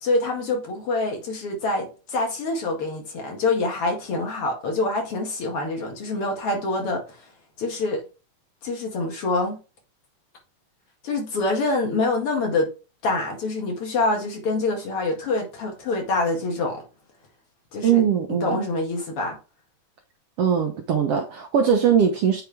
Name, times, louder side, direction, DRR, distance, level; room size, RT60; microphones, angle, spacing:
voice 1, 0.0-7.0 7.6-8.0 8.6-9.6 11.0-12.7 13.0-16.8 17.7-18.0 18.4-19.4, left 2 dB, 50° left, 2.7 m, -25 dB
voice 2, 17.8-18.6 20.4-22.4, right 8 dB, 65° right, 1.6 m, -21 dB
8.2 x 4.8 x 3.4 m
omnidirectional pair, 3.7 m